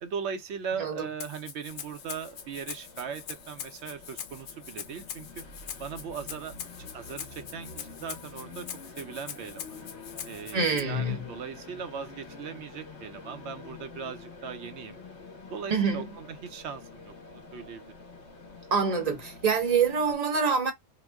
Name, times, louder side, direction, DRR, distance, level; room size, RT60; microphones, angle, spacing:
voice 1, 0.0-5.4 5.8-8.7 9.0-9.8 10.2-15.0 15.5-17.9, right 6 dB, 65° right, 0.8 m, -39 dB
Rattle (instrument), 1.2-10.8, left 8 dB, 80° left, 1.0 m, -42 dB
Train, 1.7-20.2, left 3 dB, 60° left, 1.3 m, -47 dB
voice 2, 10.5-11.2 15.7-16.1 18.7-20.7, right 5 dB, 35° right, 0.8 m, -26 dB
2.9 x 2.1 x 3.3 m
omnidirectional pair, 1.3 m